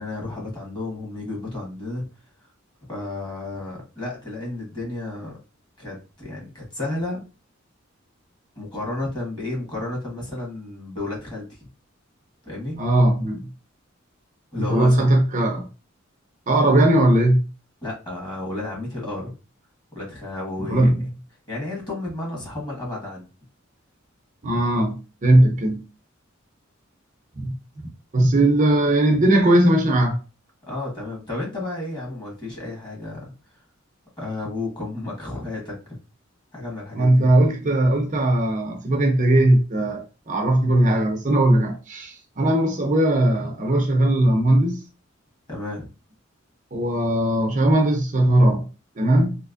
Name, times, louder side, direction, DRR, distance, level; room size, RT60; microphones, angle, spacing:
voice 1, 0.0-2.1 2.9-5.3 5.8-7.2 8.6-11.4 12.4-12.8 14.5-15.1 17.8-19.3 19.9-20.9 21.5-23.2 30.7-33.2 34.2-35.8 36.5-37.3 45.5-45.9, left 2 dB, 25° left, 1.6 m, -32 dB
voice 2, 12.8-13.5 14.7-15.7 16.5-17.5 20.6-21.0 24.4-25.0 25.2-25.8 27.4-27.5 28.1-30.2 36.9-44.8 46.7-48.6 49.0-49.4, right 1 dB, 40° right, 0.6 m, -19 dB
3.3 x 2.9 x 2.5 m
head